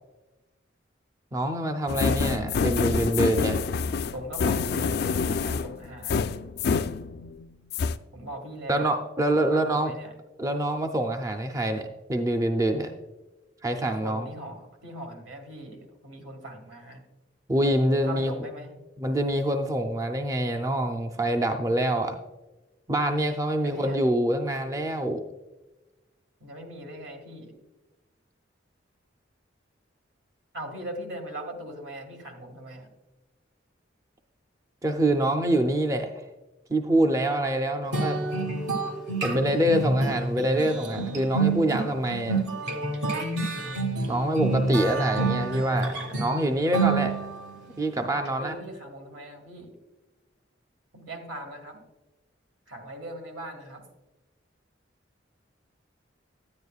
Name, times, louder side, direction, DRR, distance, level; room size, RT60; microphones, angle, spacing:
voice 1, 1.3-3.6 8.7-9.9 10.4-12.9 13.6-14.3 17.5-18.3 19.0-22.2 22.9-25.2 34.8-36.1 36.7-38.2 39.2-42.4 44.1-47.1 47.8-48.5, right 1 dB, 15° right, 5 dB, 0.4 m, -25 dB
sound 1, 1.9-7.4 7.7-8.0, left 5 dB, 55° left, 0.3 m, -27 dB
voice 2, 4.1-6.3 8.1-9.0 9.4-10.1 13.8-17.0 18.1-18.7 23.6-24.0 26.4-27.5 30.5-32.9 48.4-49.7 50.9-51.8 52.7-53.8, right 1 dB, 80° right, 3 dB, 1.9 m, -40 dB
sound 2, 37.9-47.6, right 3 dB, 60° right, 1.2 m, -28 dB
9.9 x 9.6 x 2.4 m, 1.1 s
head